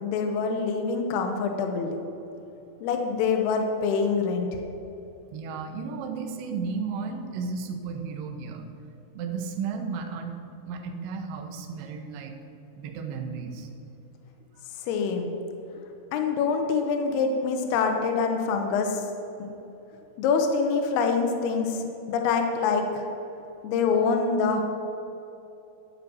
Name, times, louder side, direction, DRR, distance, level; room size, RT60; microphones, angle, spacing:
voice 1, 0.0-2.0 2.8-4.5 14.8-15.3 16.1-19.1 20.2-23.1 23.6-24.6, left 5 dB, 75° left, 4 dB, 2.5 m, -25 dB
voice 2, 5.3-8.6 9.1-10.4 10.7-12.3 12.8-13.7, right 5 dB, 75° right, 3 dB, 2.1 m, -33 dB
12.0 x 5.0 x 7.8 m, 3.0 s
omnidirectional pair, 5.1 m